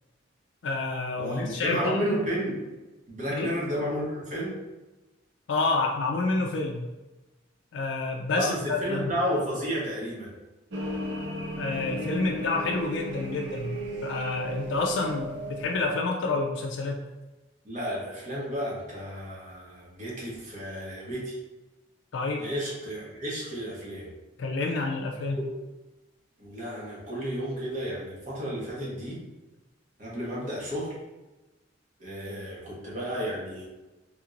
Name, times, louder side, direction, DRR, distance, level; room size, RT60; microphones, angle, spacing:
voice 1, 0.6-2.1 3.3-3.5 5.5-6.9 7.7-9.1 11.6-17.1 22.1-22.4 24.4-25.5, left 3 dB, 75° left, 0 dB, 0.4 m, -29 dB
voice 2, 1.2-2.6 3.1-4.6 8.3-10.3 17.6-21.4 22.4-24.1 26.4-29.2 30.0-31.0 32.0-33.7, equal, 40° right, -5 dB, 1.1 m, -32 dB
sound 1, 10.7-15.9, equal, 75° right, 0.6 m, -35 dB
3.5 x 2.9 x 2.4 m, 1.1 s
head